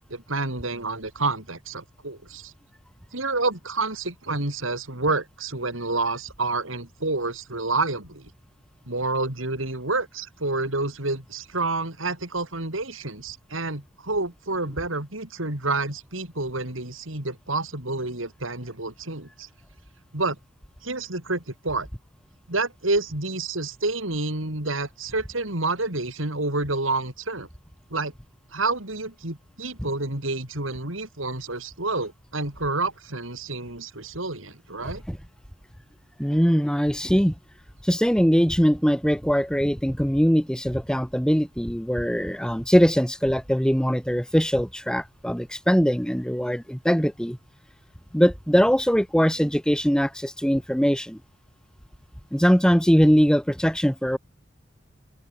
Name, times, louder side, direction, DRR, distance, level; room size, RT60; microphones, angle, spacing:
voice 1, 0.1-2.5 3.1-8.3 8.9-19.5 20.1-20.4 20.8-21.9 22.5-27.5 27.9-28.1 28.5-35.0, right 3 dB, 85° right, 5.2 m, -29 dB
voice 2, 34.8-35.2 36.2-37.3 37.8-47.4 48.1-51.2 52.3-54.2, equal, 5° left, 3.8 m, -21 dB
head